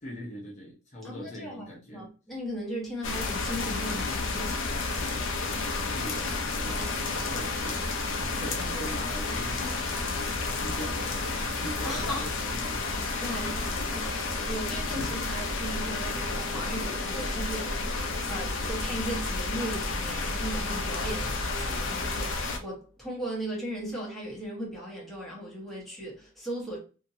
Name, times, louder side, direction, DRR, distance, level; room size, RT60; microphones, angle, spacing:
voice 1, 0.0-2.1 5.9-6.3 6.6-7.8 8.2-9.9 10.5-12.9 21.2-21.3, equal, 35° left, 0.8 m, -41 dB
voice 2, 1.0-1.6 1.9-4.6 11.8-12.3 13.2-26.8, equal, ahead, 1.1 m, -37 dB
sound 1, 3.0-22.6, left 3 dB, 75° left, 0.6 m, -31 dB
2.8 x 2.7 x 2.7 m
head